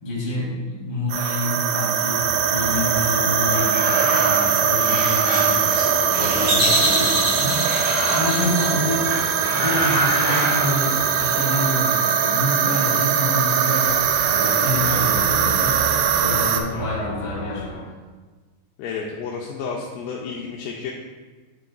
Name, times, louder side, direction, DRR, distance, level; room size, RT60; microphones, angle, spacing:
voice 1, 0.0-7.6 8.1-9.1 9.5-13.9 14.3-15.8 16.2-17.7, left 1 dB, 40° left, -6 dB, 2.1 m, -27 dB
sound 1, 1.1-16.6, right 7 dB, 85° right, 2.8 m, -21 dB
sound 2, 2.1-11.3, right 1 dB, 60° right, 0.9 m, -26 dB
sound 3, 13.8-17.8, right 1 dB, 65° left, 2.9 m, -33 dB
voice 2, 18.8-20.9, left 5 dB, 85° left, -2 dB, 2.4 m, -31 dB
10.5 x 4.7 x 2.3 m, 1.3 s
omnidirectional pair, 5.1 m